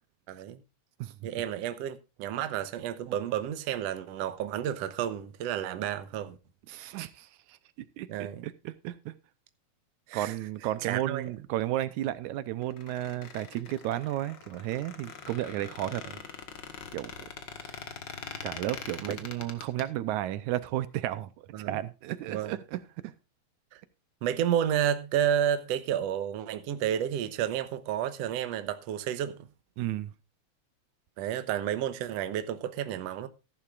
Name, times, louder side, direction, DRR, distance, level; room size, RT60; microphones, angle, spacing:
voice 1, 0.3-0.6 1.2-6.4 8.1-8.5 10.1-10.3 10.8-11.3 19.0-19.2 21.5-21.7 22.3-22.6 23.7-23.8 24.2-29.4 31.2-33.3, right 10 dB, 70° right, 1.9 m, -31 dB
voice 2, 6.7-9.2 10.1-16.1 16.9-17.3 18.4-23.1 29.8-30.1, right 14 dB, 85° right, 2.1 m, -33 dB
Squeak, 12.6-19.8, left 6 dB, 50° left, 1.6 m, -43 dB
14.5 x 12.0 x 2.5 m
omnidirectional pair, 3.3 m